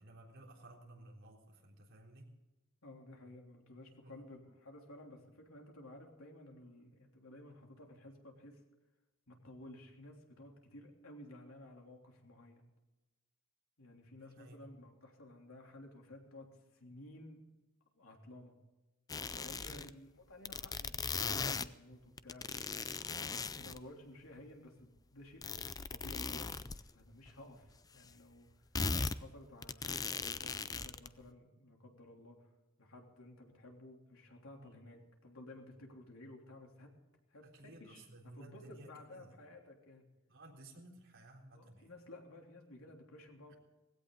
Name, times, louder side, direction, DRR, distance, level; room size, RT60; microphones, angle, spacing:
voice 1, 0.0-2.3 4.0-4.2 14.2-14.6 19.7-19.8 34.6-34.8 37.4-39.4 40.3-41.9 43.5-43.6, right 1 dB, 60° right, -1 dB, 3.8 m, -56 dB
voice 2, 2.8-8.6 9.3-12.6 13.8-17.4 18.0-18.5 19.3-22.7 23.6-28.5 29.0-32.5 32.8-36.9 37.3-38.0 38.3-40.1 41.5-43.5, left 1 dB, 85° left, 1 dB, 3.3 m, -54 dB
sound 1, 19.1-19.9 20.4-21.7 22.2-23.8 25.4-26.8 27.3-27.4 27.7-27.8 28.7-29.2 29.6-31.1, left 4 dB, 20° left, 0.4 m, -38 dB
18.5 x 16.5 x 3.9 m, 1.1 s
head